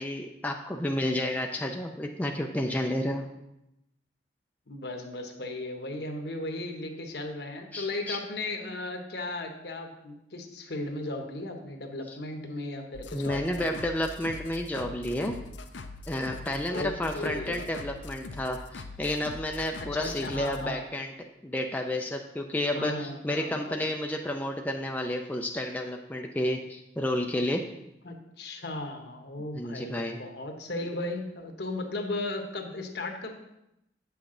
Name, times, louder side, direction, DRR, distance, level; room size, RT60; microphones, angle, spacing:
voice 1, 0.0-3.3 7.7-8.2 12.1-12.2 13.1-15.4 16.1-21.1 21.4-27.6 29.5-30.2, left 1 dB, 10° left, 2 dB, 0.4 m, -31 dB
voice 2, 4.7-13.8 16.7-17.6 19.8-20.8 22.7-23.8 28.0-33.3, left 2 dB, 65° left, 4 dB, 1.0 m, -36 dB
sound 1, 12.9-20.6, left 2 dB, 85° left, 0.6 m, -42 dB
8.2 x 5.9 x 3.8 m, 0.86 s
head